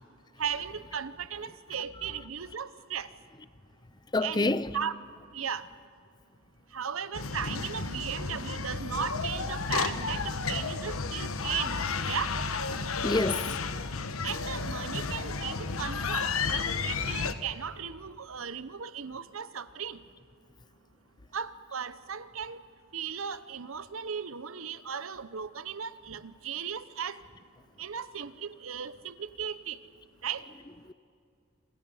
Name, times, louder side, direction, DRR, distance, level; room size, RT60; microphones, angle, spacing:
voice 1, 0.4-3.1 4.2-4.9 5.3-5.7 6.7-11.7 12.1-12.4 14.2-20.0 21.3-22.6 22.9-27.2 27.8-29.8 30.2-30.5, right 7 dB, 75° right, 0.8 m, -36 dB
voice 2, 4.1-4.7 10.0-10.2 13.0-13.5 30.7-30.9, left 2 dB, 20° left, 0.5 m, -29 dB
sound 1, 7.1-17.3, left 4 dB, 80° left, 1.2 m, -32 dB
27.5 x 27.0 x 5.6 m
head